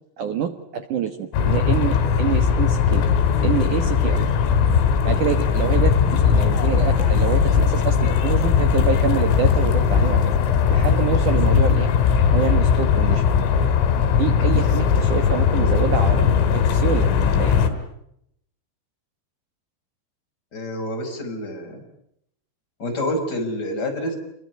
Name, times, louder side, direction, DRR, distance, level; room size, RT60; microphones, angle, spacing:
voice 1, 0.2-3.1 3.4-4.3 5.0-10.2 10.7-11.9 12.3-13.2 14.2-17.1 17.4-17.6, right 8 dB, 70° right, 8 dB, 1.9 m, -26 dB
sound 1, 1.3-17.7, left 7 dB, 85° left, 5.5 m, -19 dB
voice 2, 20.5-21.8 22.8-24.1, left 1 dB, 20° left, 3 dB, 5.7 m, -27 dB
27.5 x 23.0 x 9.4 m, 0.76 s
omnidirectional pair, 5.7 m